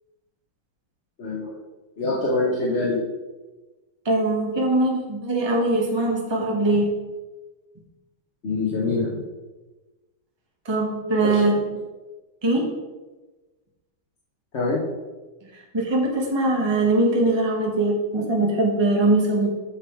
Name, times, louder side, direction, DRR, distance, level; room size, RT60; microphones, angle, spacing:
voice 1, 1.2-1.5 2.0-3.0 8.4-9.1 11.2-11.3 14.5-14.8, left 3 dB, 35° left, -5 dB, 1.3 m, -24 dB
voice 2, 4.0-6.9 10.6-11.5 12.4-12.7 15.7-19.5, right 2 dB, 15° right, 0 dB, 1.2 m, -21 dB
6.9 x 6.8 x 4.7 m, 1.2 s
omnidirectional pair, 2.3 m